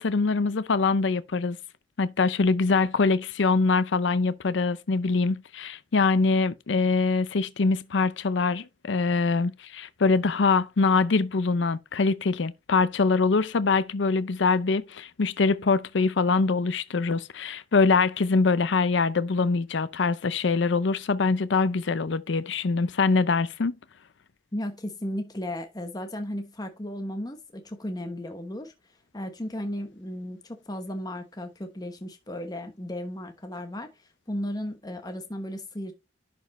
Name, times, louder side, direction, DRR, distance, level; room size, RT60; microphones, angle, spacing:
voice 1, 0.0-1.6 2.0-23.7, left 4 dB, 80° left, 0.6 m, -24 dB
voice 2, 24.5-28.7 29.1-33.9 34.3-35.9, left 1 dB, 20° left, 1.1 m, -35 dB
11.0 x 5.2 x 3.2 m
head